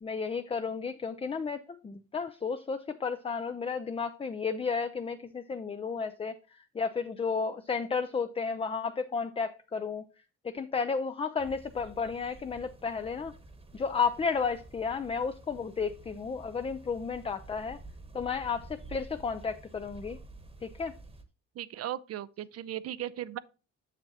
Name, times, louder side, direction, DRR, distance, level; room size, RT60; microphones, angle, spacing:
voice 1, 0.0-6.4 6.7-10.0 10.4-13.3 13.7-17.8 18.1-20.2 20.6-20.9, left 5 dB, 20° left, 0.4 m, -32 dB
sound 1, 11.4-21.2, right 2 dB, 20° right, 1.1 m, -50 dB
voice 2, 21.6-23.4, right 12 dB, 55° right, 0.5 m, -37 dB
7.4 x 6.3 x 2.8 m
cardioid pair, 90°, 30 cm